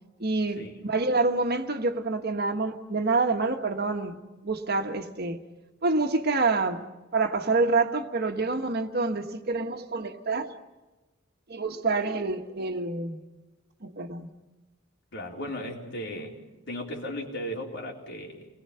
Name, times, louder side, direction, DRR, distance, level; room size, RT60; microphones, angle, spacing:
voice 1, 0.2-4.2 4.4-5.4 5.8-6.8 7.1-10.5 11.5-13.2 13.8-14.3, right 3 dB, 55° right, 1.5 m, -27 dB
voice 2, 15.1-16.4 16.7-18.5, equal, 65° left, 4.1 m, -36 dB
29.0 x 21.0 x 5.8 m
head